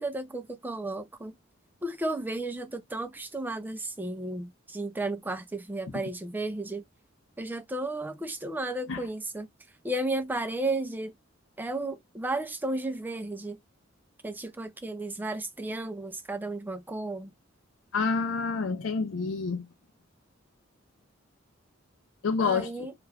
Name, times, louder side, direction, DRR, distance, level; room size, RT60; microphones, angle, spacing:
voice 1, 0.0-1.3 1.8-6.8 7.4-9.5 9.8-11.1 11.6-13.6 14.2-17.3 22.4-22.9, right 2 dB, 10° right, 0.3 m, -33 dB
voice 2, 17.9-19.6 22.2-22.7, left 5 dB, 75° left, 0.4 m, -28 dB
2.3 x 2.2 x 3.2 m
head